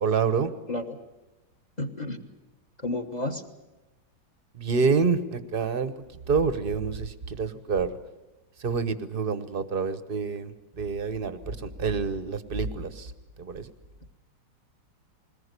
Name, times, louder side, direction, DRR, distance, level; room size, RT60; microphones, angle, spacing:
voice 1, 0.0-0.5 4.5-5.9 6.3-8.0 8.6-13.1 13.4-13.7, right 5 dB, 40° right, 12 dB, 0.9 m, -27 dB
voice 2, 0.7-1.0 1.8-2.2 2.8-3.4, left 2 dB, 25° left, 7 dB, 1.3 m, -31 dB
21.5 x 19.5 x 8.2 m, 1.1 s
omnidirectional pair, 1.9 m